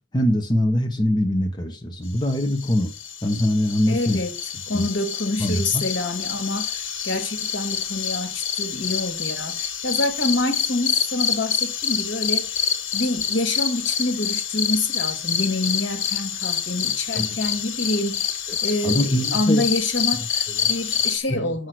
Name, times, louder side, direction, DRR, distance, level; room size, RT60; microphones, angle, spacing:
voice 1, 0.1-2.9 3.2-4.2 4.7-4.8 5.4-5.6 17.2-17.3 18.8-19.6 20.6-20.7 21.3-21.5, left 1 dB, 20° left, 1.1 m, -22 dB
sound 1, 2.3-21.2, left 8 dB, 90° left, 1.3 m, -27 dB
voice 2, 3.9-4.4 4.7-18.3 18.6-21.7, left 2 dB, 70° left, 2.0 m, -27 dB
6.5 x 6.1 x 6.1 m
head